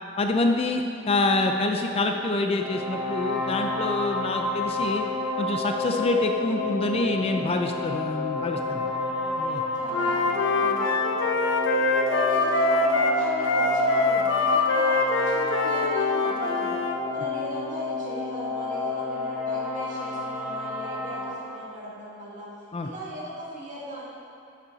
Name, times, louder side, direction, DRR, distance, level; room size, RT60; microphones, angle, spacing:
voice 1, 0.2-5.0 5.4-8.8 9.4-9.6 22.7-22.9, left 2 dB, 30° left, 4 dB, 0.5 m, -26 dB
sound 1, 2.5-21.3, left 3 dB, 5° right, 1.2 m, -30 dB
voice 2, 8.6-9.4 9.7-11.3 11.8-16.8 17.1-24.1, right 1 dB, 40° right, -7 dB, 2.4 m, -38 dB
Wind instrument woodwind instrument, 9.9-16.9, left 2 dB, 70° left, 0.8 m, -24 dB
11.5 x 6.7 x 4.0 m, 2.7 s
head